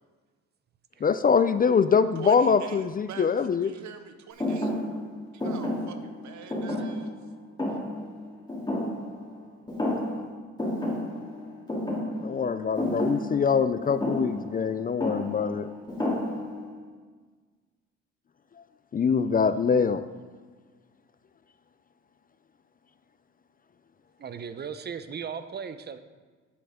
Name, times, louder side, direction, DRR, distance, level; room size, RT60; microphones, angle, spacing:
voice 1, 1.0-3.7 12.2-15.7 18.9-20.0, left 6 dB, 30° left, 12 dB, 0.4 m, -24 dB
voice 2, 2.2-3.4 3.6-4.7 5.3-7.1, right 7 dB, 70° right, 8 dB, 1.0 m, -44 dB
Thump thud, 4.4-9.4 9.7-10.3 10.6-16.7, left 1 dB, 15° left, 3.1 m, -31 dB
voice 3, 24.2-26.0, right 6 dB, 35° right, 11 dB, 0.7 m, -37 dB
10.5 x 7.6 x 3.7 m, 1.5 s
cardioid pair, 90°, 30 cm